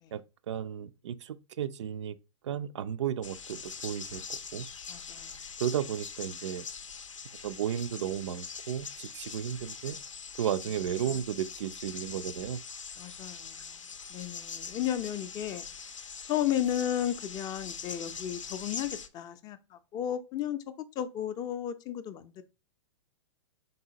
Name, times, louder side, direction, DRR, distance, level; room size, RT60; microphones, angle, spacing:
voice 1, 0.1-2.2 2.4-4.7 5.6-6.6 7.4-10.0 10.4-12.6, right 9 dB, 70° right, 0.4 m, -34 dB
sound 1, 3.2-19.1, left 6 dB, 90° left, 0.5 m, -43 dB
voice 2, 4.9-5.4 13.0-13.6 14.1-15.6 16.3-20.6 21.0-22.4, left 11 dB, 25° left, 0.4 m, -33 dB
4.0 x 3.7 x 2.7 m
hypercardioid pair, 110°, 16 cm